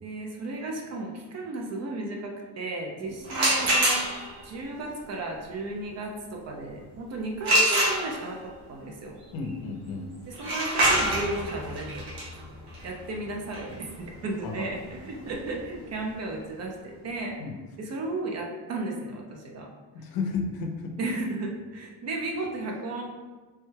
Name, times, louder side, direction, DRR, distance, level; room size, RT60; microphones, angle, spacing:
voice 1, 0.0-9.2 10.3-12.4 12.8-17.4 17.8-19.7 21.0-23.0, right 2 dB, 45° right, 1 dB, 0.4 m, -34 dB
sound 1, 3.3-4.4 7.4-8.5 10.3-16.0, right 1 dB, 85° right, 0.9 m, -26 dB
voice 2, 9.3-10.1 14.4-14.7 17.4-17.6 19.9-21.0, left 4 dB, 65° left, 2 dB, 0.5 m, -33 dB
3.2 x 2.2 x 3.1 m, 1.3 s
cardioid pair, 175°, 39 cm